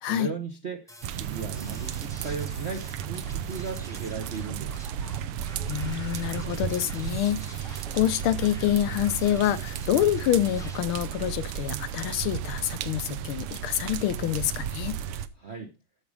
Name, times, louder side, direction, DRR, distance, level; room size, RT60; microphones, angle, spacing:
voice 1, 0.0-4.9 15.4-15.7, right 5 dB, 55° right, 0.7 m, -37 dB
sound 1, 0.9-10.8, equal, 5° left, 0.6 m, -48 dB
sound 2, 1.0-15.3, right 10 dB, 85° right, 1.6 m, -34 dB
voice 2, 5.7-15.0, left 12 dB, 80° left, 1.6 m, -27 dB
13.5 x 5.2 x 4.8 m
omnidirectional pair, 2.4 m